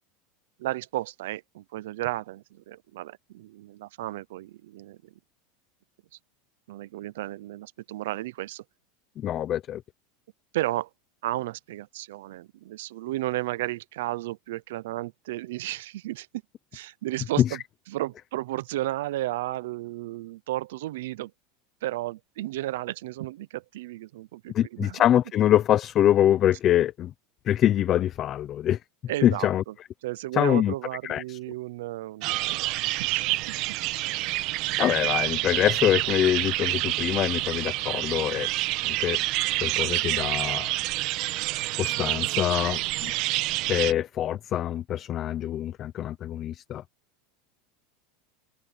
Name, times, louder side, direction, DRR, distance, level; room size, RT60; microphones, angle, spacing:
voice 1, 0.6-5.1 6.7-8.6 10.5-10.9 11.2-16.3 16.7-17.6 17.9-21.3 21.8-25.0 29.1-29.7 30.0-33.4, right 16 dB, 80° right, 0.6 m, -33 dB
voice 2, 9.2-9.8 17.4-17.6 24.5-27.1 27.5-28.8 29.2-29.6 30.3-30.7 31.0-31.4 34.8-38.5 38.8-39.2 39.6-40.7 41.8-43.1 43.7-46.8, left 11 dB, 30° left, 0.7 m, -24 dB
sound 1, 32.2-43.9, right 19 dB, 45° right, 1.3 m, -28 dB
open air
supercardioid pair, 160°, 0 cm